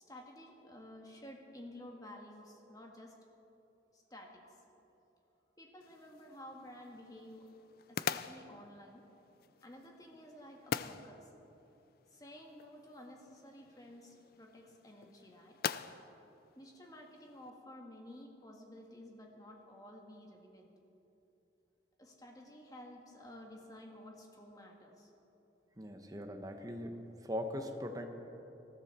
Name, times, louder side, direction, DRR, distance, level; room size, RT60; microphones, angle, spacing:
voice 1, 0.1-3.1 3.9-4.6 5.6-7.5 7.9-9.0 9.6-11.3 12.1-15.6 16.5-20.7 22.0-25.1, left 1 dB, 20° left, 1 dB, 1.7 m, -53 dB
sound 1, 5.8-17.5, left 7 dB, 50° left, 0.4 m, -45 dB
voice 2, 25.8-28.1, equal, 20° right, 5 dB, 1.0 m, -40 dB
19.5 x 14.0 x 4.3 m, 2.9 s
head